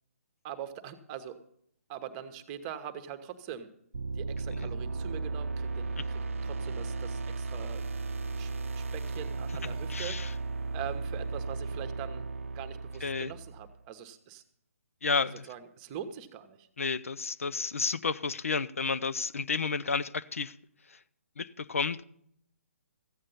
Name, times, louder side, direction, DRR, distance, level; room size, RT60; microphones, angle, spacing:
voice 1, 0.4-1.4 1.9-3.7 4.1-7.8 8.4-10.4 10.7-12.3 12.5-14.4 15.5-16.7, right 9 dB, 25° right, 1.0 m, -43 dB
sound 1, 3.9-13.8, right 3 dB, 60° right, 0.6 m, -35 dB
voice 2, 9.9-10.3 13.0-13.3 15.0-15.5 16.8-20.5 20.9-21.0 21.4-22.0, left 4 dB, 65° left, 0.5 m, -31 dB
14.5 x 8.7 x 5.5 m
figure-of-eight pair, 135°, 8 cm